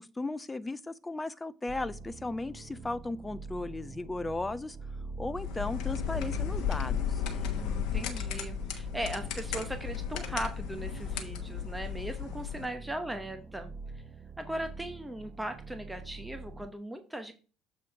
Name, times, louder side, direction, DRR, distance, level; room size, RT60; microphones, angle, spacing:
voice 1, 0.0-4.8 5.2-7.2, left 2 dB, 15° left, 0.6 m, -36 dB
sound 1, 1.7-16.7, right 3 dB, 35° right, 0.9 m, -45 dB
sound 2, 5.3-12.7, left 8 dB, 55° left, 1.2 m, -34 dB
voice 2, 7.4-13.7 14.4-17.3, right 1 dB, 5° right, 1.0 m, -38 dB
7.4 x 4.3 x 4.8 m
figure-of-eight pair, 60°, 0 cm